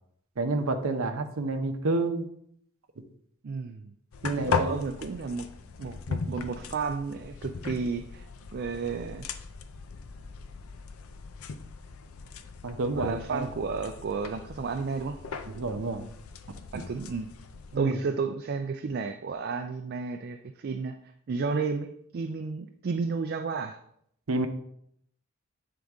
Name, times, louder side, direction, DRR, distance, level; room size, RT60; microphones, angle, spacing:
voice 1, 0.4-2.3 4.2-4.8 12.6-13.5 15.5-16.0 16.7-16.8 17.7-18.0 24.3-24.5, right 2 dB, 70° right, 6 dB, 0.7 m, -29 dB
voice 2, 3.4-3.9 4.4-5.5 5.8-8.3 8.5-9.3 12.9-15.2 16.7-17.3 17.8-21.0 21.3-23.8, right 4 dB, 50° right, 6 dB, 0.4 m, -32 dB
sound 1, 4.1-17.8, left 5 dB, 80° left, 0.5 m, -38 dB
7.9 x 3.8 x 3.5 m, 0.69 s
head